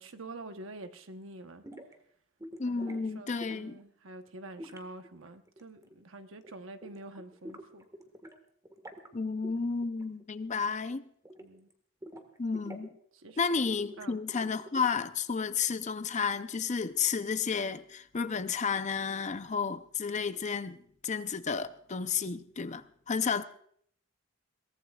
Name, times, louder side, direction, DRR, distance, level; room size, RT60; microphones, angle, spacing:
voice 1, 0.0-1.6 2.6-7.9 11.4-11.7 13.2-13.4 14.0-14.2, right 2 dB, 70° right, 1.0 m, -47 dB
sound 1, 1.6-2.0 2.4-3.0 3.4-3.8 4.6-6.0 6.3-6.6 6.8-8.4 8.6-9.1 9.4-9.6 9.8-10.3 10.6-11.7 12.0-12.9 13.3-15.1, right 1 dB, 15° right, 1.5 m, -47 dB
voice 2, 2.6-3.8 9.1-11.0 12.4-12.9 13.4-20.8 21.0-23.4, left 5 dB, 35° left, 0.6 m, -32 dB
22.5 x 17.5 x 2.4 m
head